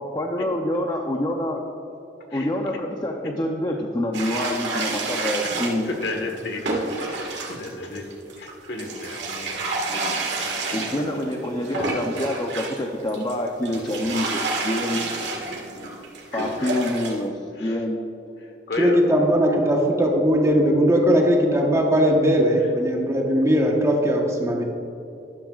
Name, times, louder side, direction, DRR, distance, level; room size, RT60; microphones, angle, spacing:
voice 1, 0.0-1.6 2.3-5.9 10.7-15.1 16.3-18.1, left 1 dB, 20° left, 1 dB, 0.7 m, -26 dB
sound 1, 4.1-12.8 13.1-17.2, right 3 dB, 75° right, 1.8 m, -29 dB
voice 2, 5.8-6.6 7.1-8.1 8.4-9.6 9.9-10.1 14.1-14.2 16.3-16.9 17.5-17.8 18.4-19.0 22.6-22.7, left 2 dB, 65° left, 3 dB, 1.5 m, -33 dB
voice 3, 18.8-24.6, equal, 15° right, 0 dB, 1.2 m, -19 dB
12.5 x 11.5 x 2.5 m, 3.0 s
head